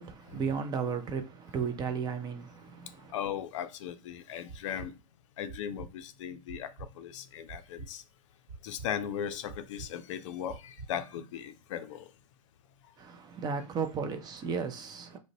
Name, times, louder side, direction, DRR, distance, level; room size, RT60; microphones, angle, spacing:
voice 1, 0.0-3.1 13.0-15.2, right 6 dB, 25° right, 0.4 m, -34 dB
voice 2, 3.1-4.9 5.4-8.0 8.6-12.1, left 9 dB, 60° left, 0.4 m, -38 dB
sound 1, 4.5-4.9 5.5-5.9 6.5-6.9 7.5-7.9 8.5-8.9 9.5-9.9 10.5-10.9, right 4 dB, 55° right, 1.0 m, -44 dB
2.5 x 2.0 x 3.9 m
hypercardioid pair, 105°, 17 cm